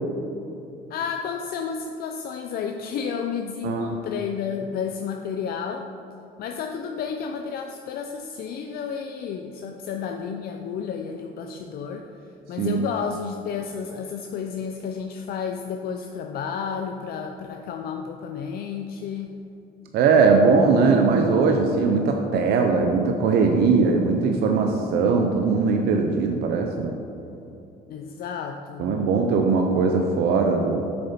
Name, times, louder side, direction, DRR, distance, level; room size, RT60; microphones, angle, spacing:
voice 1, 0.9-5.9 6.4-12.1 12.5-19.3 27.9-28.9, left 6 dB, 65° left, 4 dB, 0.5 m, -31 dB
voice 2, 19.9-27.0 28.8-30.8, right 4 dB, 75° right, 3 dB, 0.7 m, -20 dB
7.7 x 6.8 x 4.3 m, 2.9 s
cardioid pair, 110°, 17 cm